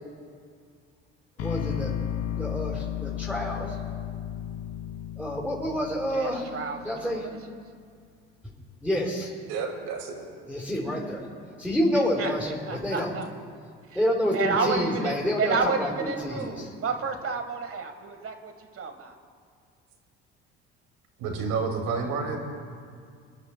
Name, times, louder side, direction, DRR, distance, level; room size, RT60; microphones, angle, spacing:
sound 1, 1.4-7.4, left 10 dB, 45° left, 0.7 m, -34 dB
voice 1, 1.4-1.9 2.3-3.8 5.2-6.5 6.8-7.2 8.8-9.3 10.5-11.3 11.6-13.1 13.9-16.5, equal, 5° left, -4 dB, 4.0 m, -28 dB
voice 2, 6.1-7.5 12.2-13.3 13.8-14.0 14.3-19.2, right 5 dB, 40° right, 6 dB, 1.5 m, -31 dB
voice 3, 9.5-10.3 21.2-22.4, right 5 dB, 75° right, 2 dB, 2.3 m, -30 dB
28.0 x 11.0 x 2.2 m, 2.2 s
hypercardioid pair, 65°, 34 cm